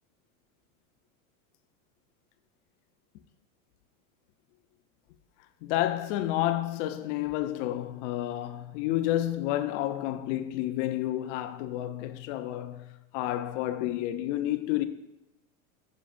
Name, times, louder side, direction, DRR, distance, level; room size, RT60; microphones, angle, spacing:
voice 1, 5.6-14.9, left 13 dB, 60° left, 0.7 m, -30 dB
10.0 x 6.5 x 2.6 m
hypercardioid pair, 115°, 42 cm